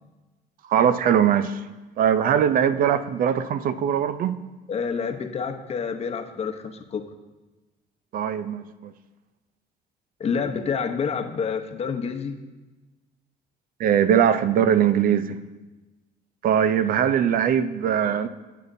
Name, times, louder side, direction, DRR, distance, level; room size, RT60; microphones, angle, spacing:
voice 1, 0.7-1.6 2.0-4.4 8.1-8.9 13.8-15.4 16.4-18.3, right 9 dB, 55° right, 13 dB, 0.5 m, -21 dB
voice 2, 4.7-7.1 10.2-12.4, left 6 dB, 40° left, 6 dB, 0.8 m, -28 dB
12.0 x 8.5 x 2.7 m, 1.2 s
cardioid pair, 110°, 17 cm